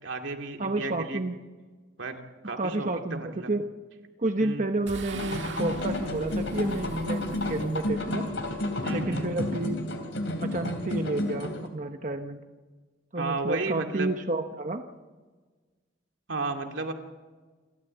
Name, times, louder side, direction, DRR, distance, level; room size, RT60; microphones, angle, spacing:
voice 1, 0.0-1.2 2.0-2.2 2.4-3.5 4.4-4.7 8.8-9.3 13.2-14.1 16.3-16.9, right 3 dB, 85° right, 4 dB, 2.5 m, -33 dB
voice 2, 0.6-1.4 2.6-3.6 4.2-8.3 8.9-9.8 10.4-12.4 13.1-14.8, right 2 dB, 40° right, 6 dB, 1.0 m, -30 dB
sound 1, 4.9-10.2, right 3 dB, 70° right, 1.9 m, -44 dB
sound 2, 5.1-11.7, left 1 dB, 80° left, 3.2 m, -31 dB
28.0 x 13.0 x 8.0 m, 1.3 s
head